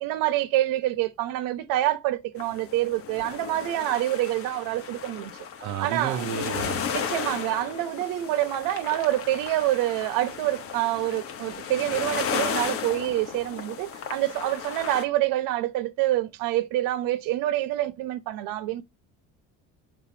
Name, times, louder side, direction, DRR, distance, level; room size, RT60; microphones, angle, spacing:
voice 1, 0.0-5.3 5.8-6.3 6.9-18.8, right 15 dB, 80° right, 1.2 m, -27 dB
sound 1, 2.4-15.0, left 7 dB, 40° left, 1.1 m, -34 dB
voice 2, 5.6-6.8, right 9 dB, 50° right, 0.9 m, -31 dB
7.2 x 5.3 x 2.8 m
cardioid pair, 165°, 33 cm